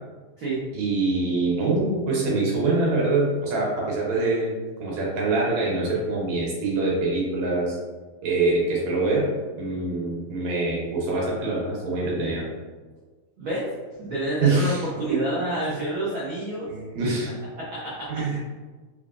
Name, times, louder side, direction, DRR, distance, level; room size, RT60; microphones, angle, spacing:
voice 1, 0.7-4.5 4.8-7.8 8.2-9.3 9.6-12.4 14.4-14.8 15.1-15.2 16.7-17.3 18.1-18.4, right 3 dB, 70° right, -3 dB, 2.2 m, -24 dB
voice 2, 13.4-13.7 14.0-16.7 17.5-18.4, right 1 dB, 90° right, -7 dB, 1.1 m, -29 dB
4.7 x 3.4 x 2.4 m, 1.3 s
omnidirectional pair, 3.5 m